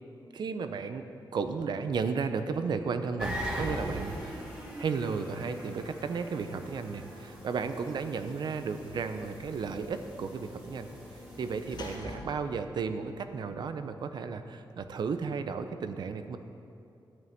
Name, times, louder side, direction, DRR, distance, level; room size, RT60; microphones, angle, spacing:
voice 1, 0.3-1.1 1.3-4.4 4.8-10.9 11.4-16.4, right 5 dB, 60° right, 9 dB, 0.7 m, -34 dB
sound 1, 3.2-12.0, equal, 10° right, 2.7 m, -41 dB
Sliding door / Slam, 8.5-13.9, left 2 dB, 65° left, 1.9 m, -48 dB
13.0 x 5.5 x 9.4 m, 2.6 s
wide cardioid pair, 170°, 8 cm